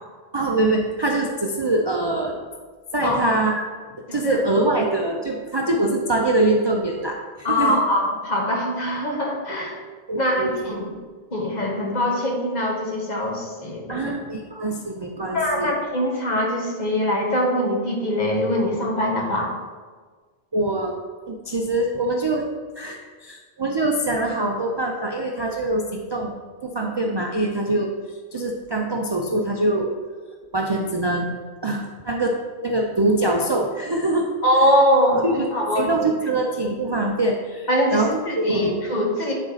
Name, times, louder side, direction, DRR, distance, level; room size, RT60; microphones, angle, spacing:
voice 1, 0.3-2.4 2.9-3.7 3.9-7.8 10.1-10.6 13.9-15.7 20.5-21.0 21.3-26.3 26.6-27.9 28.3-29.9 30.5-31.4 31.6-32.4 32.6-34.3 35.2-35.4 35.8-38.8, right 2 dB, 35° right, 0 dB, 0.4 m, -24 dB
voice 2, 3.0-3.3 4.1-4.4 7.4-9.8 10.2-10.9 11.3-14.1 15.3-19.5 34.4-35.9 37.7-39.3, equal, 40° left, -1 dB, 1.2 m, -22 dB
9.8 x 4.1 x 4.0 m, 1.5 s
omnidirectional pair, 1.1 m